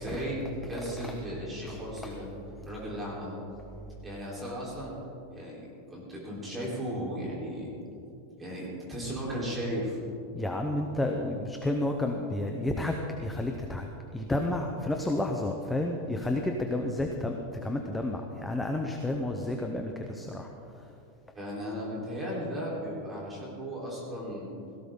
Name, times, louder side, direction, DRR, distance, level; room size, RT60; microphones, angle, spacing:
voice 1, 0.0-2.3 2.6-3.4 4.0-4.9 5.3-7.7 8.4-10.0 21.3-24.5, equal, 10° right, -5 dB, 3.8 m, -36 dB
voice 2, 10.3-13.9 14.1-20.9, left 1 dB, 5° left, 2 dB, 0.7 m, -31 dB
17.5 x 16.0 x 3.8 m, 2.7 s
supercardioid pair, 170°, 0 cm